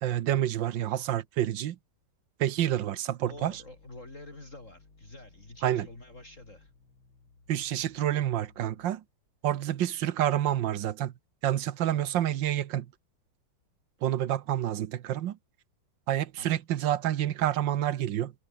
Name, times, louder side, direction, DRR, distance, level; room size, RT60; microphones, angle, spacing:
voice 1, 0.0-1.8 2.4-3.5 5.6-5.9 7.5-9.0 9.4-11.1 11.4-12.9 14.0-15.4 16.1-18.3, right 11 dB, 70° right, 1.6 m, -28 dB
sound 1, 3.2-9.2, left 4 dB, 85° left, 5.2 m, -59 dB
voice 2, 3.3-6.7 16.4-16.6, left 2 dB, 35° left, 5.3 m, -47 dB
omnidirectional pair, 2.2 m